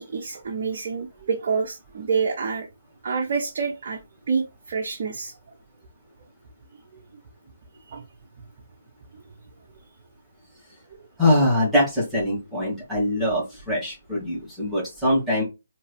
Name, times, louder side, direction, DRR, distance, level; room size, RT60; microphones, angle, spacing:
voice 1, 0.0-2.7 3.0-4.0 4.3-5.3 7.9-8.0 12.7-12.8, right 5 dB, 50° right, 2 dB, 0.9 m, -27 dB
voice 2, 11.2-15.4, left 1 dB, 5° right, -7 dB, 2.3 m, -23 dB
4.5 x 3.0 x 3.2 m, 0.25 s
figure-of-eight pair, 145°, 0 cm